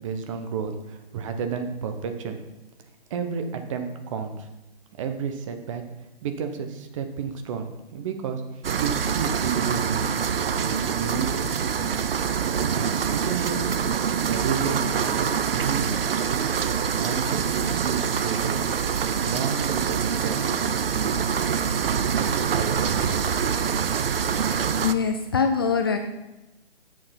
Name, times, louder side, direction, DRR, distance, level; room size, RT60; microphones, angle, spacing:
voice 1, 0.0-2.4 3.1-4.5 5.0-5.8 6.2-12.0 12.7-13.8 14.2-15.9 16.6-18.6 19.2-21.3 22.1-23.8, right 6 dB, 35° right, 6 dB, 1.0 m, -32 dB
sound 1, 8.6-24.9, right 7 dB, 70° right, 0.7 m, -25 dB
voice 2, 24.8-26.0, left 6 dB, 25° left, 6 dB, 0.4 m, -23 dB
7.6 x 7.0 x 5.8 m, 0.97 s
hypercardioid pair, 140°, 29 cm